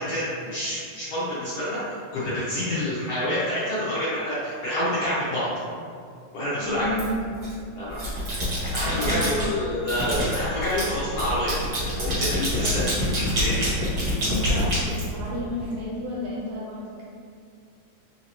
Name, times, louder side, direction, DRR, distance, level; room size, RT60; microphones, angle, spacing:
voice 1, 0.0-5.5 6.3-6.8 7.7-8.0 8.7-11.5 12.0-12.8 13.3-13.6, left 1 dB, 70° left, -11 dB, 1.6 m, -27 dB
voice 2, 6.6-7.2 8.8-9.5 12.6-13.0 14.2-17.0, equal, 75° right, -6 dB, 2.2 m, -32 dB
sound 1, 7.0-7.5 7.9-9.5 9.9-15.6, equal, 50° right, 1.0 m, -26 dB
4.9 x 2.7 x 2.9 m, 2.2 s
omnidirectional pair, 3.6 m